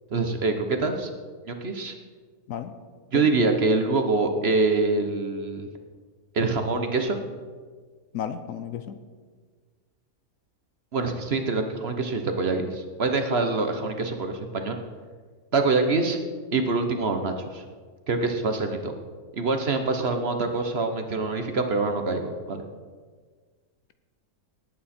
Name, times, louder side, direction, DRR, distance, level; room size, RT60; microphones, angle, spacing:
voice 1, 0.1-1.1 1.5-1.9 3.1-5.7 6.3-7.2 10.9-14.8 15.5-16.2 16.5-17.6 18.1-18.9 19.3-22.6, right 3 dB, 45° right, 6 dB, 1.1 m, -25 dB
voice 2, 8.1-9.0, left 9 dB, 65° left, 10 dB, 1.0 m, -33 dB
18.5 x 8.6 x 4.3 m, 1.6 s
omnidirectional pair, 1.6 m